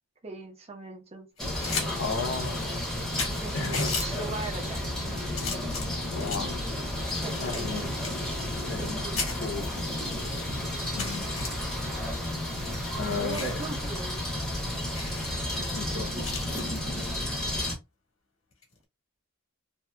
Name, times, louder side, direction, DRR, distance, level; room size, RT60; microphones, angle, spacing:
voice 1, 0.2-1.3 1.8-2.1 3.4-5.8 6.4-6.6 7.2-7.9 8.8-9.1 10.4-10.9 13.0-14.2 15.5-16.3, right 3 dB, 30° right, 0.9 m, -40 dB
sound 1, 1.4-1.9 2.2-2.3 2.9-3.0 3.2-4.1 4.8-5.0 5.4-6.5 7.1-8.9 9.2-9.3 10.0-10.1 10.4-10.5 11.0-11.5 12.3-13.6 14.0-14.2 14.4-14.5 14.9-15.3 16.2-16.8 18.5-18.8, left 5 dB, 85° left, 1.3 m, -35 dB
sound 2, 1.4-17.8, left 1 dB, 5° left, 0.9 m, -32 dB
voice 2, 2.0-2.8 3.5-3.9 6.1-6.6 7.4-7.8 8.7-9.7 10.4-10.5 10.9-11.3 13.0-13.6 15.7-16.1, left 4 dB, 60° left, 0.8 m, -34 dB
2.8 x 2.7 x 2.3 m
head